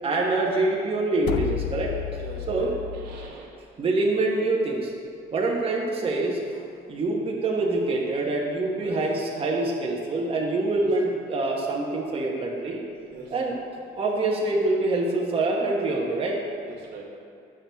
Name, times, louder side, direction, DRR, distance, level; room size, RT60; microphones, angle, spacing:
voice 1, 0.0-1.9 2.5-2.7 3.8-4.9 5.3-12.8 13.3-13.5 14.0-16.4, right 2 dB, 35° right, -3 dB, 1.1 m, -25 dB
sound 1, 1.2-3.3, left 11 dB, 70° left, 0.4 m, -32 dB
voice 2, 2.2-3.5 8.8-9.0 10.8-10.9 13.1-13.3 14.5-14.6 16.6-17.0, right 3 dB, 80° right, -3 dB, 1.6 m, -41 dB
8.9 x 6.1 x 3.4 m, 2.6 s
cardioid pair, 110°, 17 cm